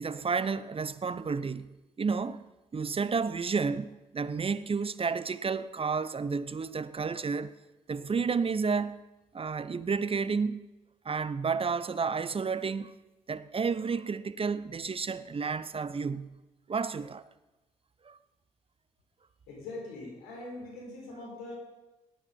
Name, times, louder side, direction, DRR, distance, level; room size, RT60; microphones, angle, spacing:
voice 1, 0.0-2.4 2.7-7.6 7.9-9.0 9.3-10.7 11.0-12.9 13.3-16.4 16.7-17.3 18.0-18.2, right 5 dB, 35° right, 0.9 m, -31 dB
voice 2, 19.5-21.6, left 2 dB, 85° left, 4.6 m, -42 dB
17.5 x 11.0 x 5.4 m
hypercardioid pair, 45°, 16 cm